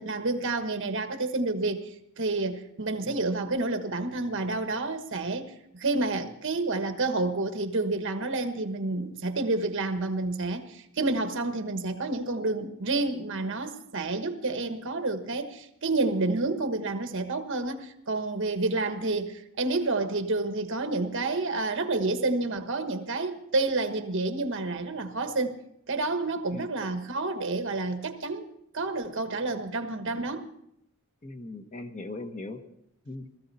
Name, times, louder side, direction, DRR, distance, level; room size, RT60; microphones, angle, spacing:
voice 1, 0.0-1.8 2.2-25.6 25.9-28.5 28.7-30.5, right 2 dB, 60° right, 1.3 m, -29 dB
voice 2, 31.2-32.6 33.0-33.3, left 2 dB, 35° left, 1.2 m, -39 dB
19.0 x 14.5 x 4.2 m
head